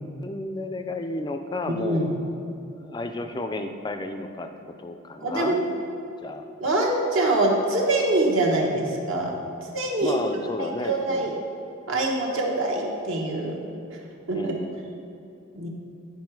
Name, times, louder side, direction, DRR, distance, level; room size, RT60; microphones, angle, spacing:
voice 1, 0.2-2.1 2.8-4.5 4.8-5.7 6.2-6.4 10.0-11.3 14.3-14.8, left 2 dB, 20° left, 7 dB, 0.3 m, -32 dB
voice 2, 1.7-2.1 5.2-5.6 6.6-9.3 9.6-10.2 10.6-11.3 11.9-13.6 13.9-14.0 14.3-14.6 15.5-15.7, right 2 dB, 65° right, -1 dB, 1.1 m, -24 dB
9.4 x 4.7 x 4.6 m, 2.7 s
head